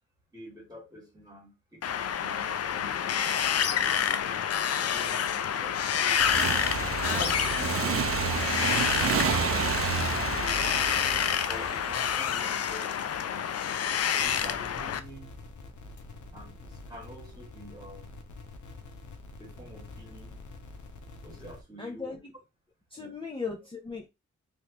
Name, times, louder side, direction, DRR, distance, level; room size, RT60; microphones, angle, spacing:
voice 1, 0.3-3.4 4.1-6.2 7.0-7.9 8.4-13.8 14.2-15.4 16.3-18.1 19.4-20.4 21.2-22.2 23.0-23.1, equal, 15° right, 1.9 m, -47 dB
Wind, 1.8-15.0, left 8 dB, 55° left, 0.5 m, -28 dB
Motorcycle / Engine, 6.2-12.6, right 6 dB, 50° right, 0.5 m, -30 dB
sound 1, 14.2-21.6, left 3 dB, 80° left, 0.8 m, -46 dB
voice 2, 21.8-22.2 22.9-24.1, left 4 dB, 20° left, 0.7 m, -37 dB
3.3 x 3.1 x 2.9 m
cardioid pair, 90°, 29 cm